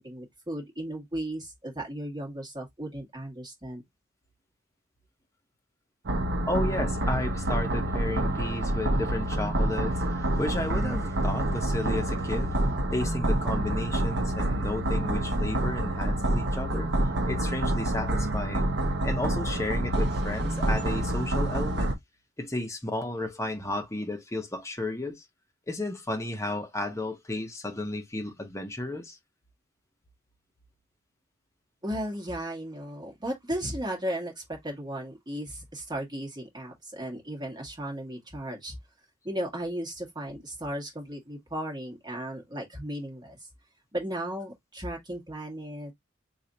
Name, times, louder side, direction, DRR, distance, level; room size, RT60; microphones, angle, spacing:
voice 1, 0.0-3.8 31.8-38.8 39.2-43.4 43.9-45.9, right 1 dB, 20° right, 1.6 m, -35 dB
sound 1, 6.0-21.9, right 1 dB, 60° right, 0.8 m, -27 dB
voice 2, 6.5-12.6 12.9-16.9 17.2-18.7 19.0-21.9 22.4-25.2 25.7-29.2, left 1 dB, 15° left, 0.9 m, -33 dB
3.2 x 2.5 x 4.0 m
head